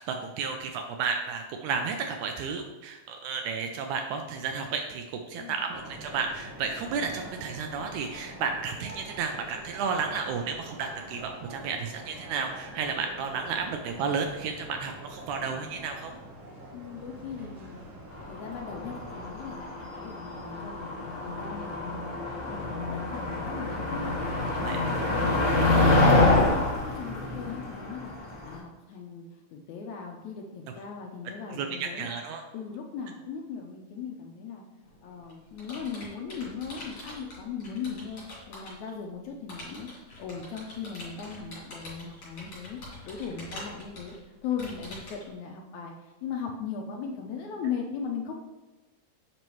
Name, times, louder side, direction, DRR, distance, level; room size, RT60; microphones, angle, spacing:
voice 1, 0.1-16.1 24.5-24.8 31.5-32.4, right 5 dB, 80° right, 4 dB, 1.8 m, -32 dB
sound 1, 5.7-19.3, right 1 dB, 55° right, 1.5 m, -45 dB
voice 2, 16.7-17.9 18.3-22.2 22.5-24.2 24.5-26.5 26.8-29.3 29.5-32.1 32.5-34.6 35.0-39.9 40.2-42.8 43.0-48.3, left 6 dB, 75° left, 1 dB, 1.8 m, -38 dB
Motor vehicle (road), 18.2-28.5, left 2 dB, 30° left, 1.2 m, -26 dB
Computer keyboard, 34.8-38.9 39.5-45.3, left 1 dB, 45° left, 3.2 m, -44 dB
7.5 x 5.4 x 3.0 m, 1.1 s
omnidirectional pair, 3.8 m